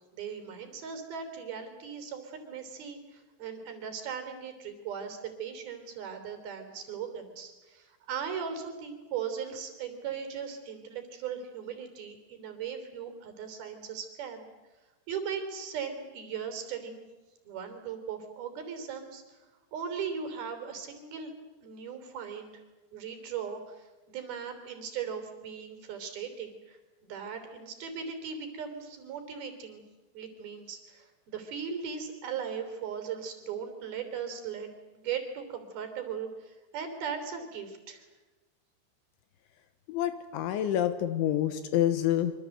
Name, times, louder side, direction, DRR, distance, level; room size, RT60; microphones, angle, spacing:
voice 1, 0.1-14.5 15.1-17.0 17.4-19.4 19.7-21.3 21.6-22.6 22.9-26.8 27.1-29.8 30.1-38.1, right 7 dB, 55° right, 7 dB, 5.0 m, -38 dB
voice 2, 39.9-42.3, left 11 dB, 80° left, 10 dB, 3.6 m, -27 dB
25.5 x 25.0 x 7.9 m, 1.2 s
omnidirectional pair, 5.5 m